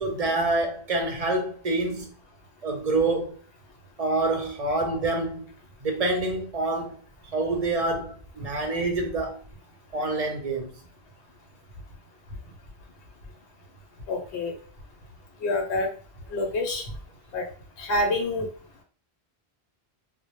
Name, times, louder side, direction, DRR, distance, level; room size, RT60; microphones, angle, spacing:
voice 1, 0.0-2.2 2.6-3.4 4.0-5.5 5.8-7.0 7.3-9.4 9.9-10.7, right 2 dB, 50° right, 0.5 m, -27 dB
voice 2, 14.1-14.5 15.4-15.9 16.3-16.8 17.3-17.4 17.8-18.5, left 2 dB, 80° left, 0.9 m, -26 dB
2.1 x 2.0 x 2.9 m
omnidirectional pair, 1.1 m